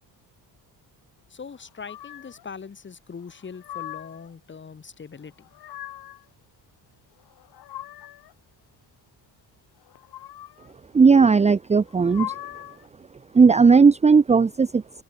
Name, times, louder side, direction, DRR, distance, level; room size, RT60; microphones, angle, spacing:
voice 1, 1.3-5.5, left 6 dB, 25° left, 7.1 m, -41 dB
sound 1, 1.9-2.5 3.3-4.3 5.3-6.3 7.2-8.3 9.9-10.7 11.8-12.9, left 13 dB, 60° left, 3.2 m, -40 dB
voice 2, 10.9-12.4 13.3-15.0, right 5 dB, 15° right, 0.8 m, -16 dB
open air
cardioid pair, 170°, 42 cm